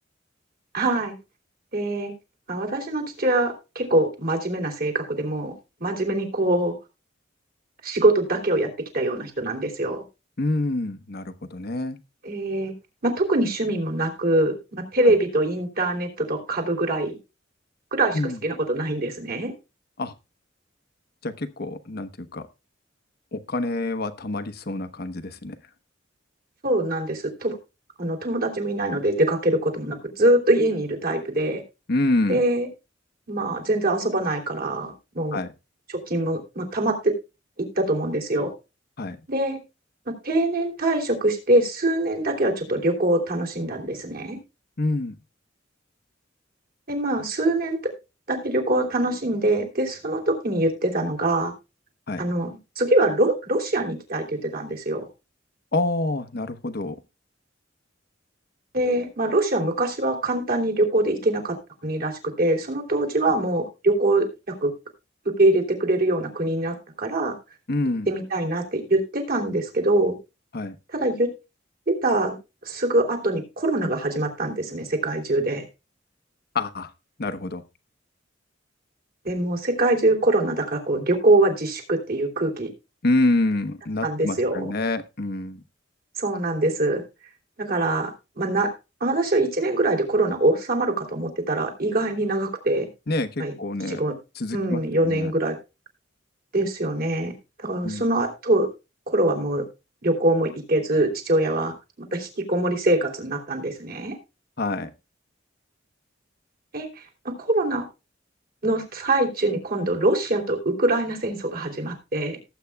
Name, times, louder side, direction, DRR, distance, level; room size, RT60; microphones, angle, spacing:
voice 1, 0.7-1.1 1.7-2.1 2.5-5.5 5.8-6.7 7.8-8.7 8.9-10.0 12.2-12.7 13.0-17.2 17.9-19.5 26.6-27.6 28.0-31.6 32.3-32.7 33.3-35.4 35.9-37.1 37.8-38.5 39.3-39.6 40.1-44.4 46.9-47.9 48.3-51.5 52.2-55.0 58.7-61.6 61.8-64.7 65.4-67.3 68.1-70.1 70.9-71.3 71.9-72.4 72.6-75.7 79.2-82.7 84.0-84.7 86.2-87.0 87.6-88.7 89.0-92.9 93.4-93.5 93.9-94.1 94.5-95.5 96.5-97.3 97.6-98.7 99.1-99.6 100.0-101.7 102.1-104.2 106.7-107.8 108.6-112.4, right 1 dB, 50° right, 1 dB, 3.2 m, -23 dB
voice 2, 10.4-12.0 15.0-15.1 18.1-18.4 20.0-20.1 21.2-22.5 23.3-25.6 31.9-32.4 35.3-35.5 39.0-39.2 44.8-45.1 52.1-52.2 55.7-57.0 63.2-63.3 67.7-68.1 70.5-70.8 76.5-76.9 77.2-77.6 83.0-85.6 93.1-94.0 94.3-95.3 97.8-98.0 104.6-104.9, left 2 dB, 55° left, 9 dB, 1.0 m, -27 dB
18.5 x 8.3 x 2.3 m, 0.27 s
head